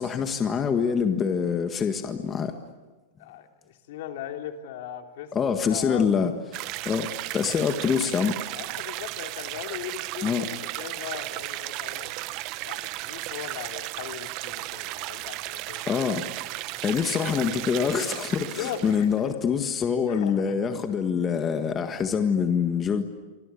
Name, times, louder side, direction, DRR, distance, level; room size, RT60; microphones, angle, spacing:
voice 1, 0.0-2.5 5.3-6.3 6.8-7.1 7.3-8.4 10.2-10.5 15.9-16.3 16.8-23.0, left 6 dB, 20° left, 7 dB, 1.6 m, -25 dB
voice 2, 3.2-6.3 8.5-12.1 12.6-15.9 16.8-17.0 18.6-19.4 20.1-20.6, left 9 dB, 65° left, 5 dB, 3.3 m, -39 dB
sound 1, 6.5-19.2, right 18 dB, 45° right, 1.0 m, -35 dB
28.0 x 25.0 x 8.5 m, 1.3 s
supercardioid pair, 150°, 0 cm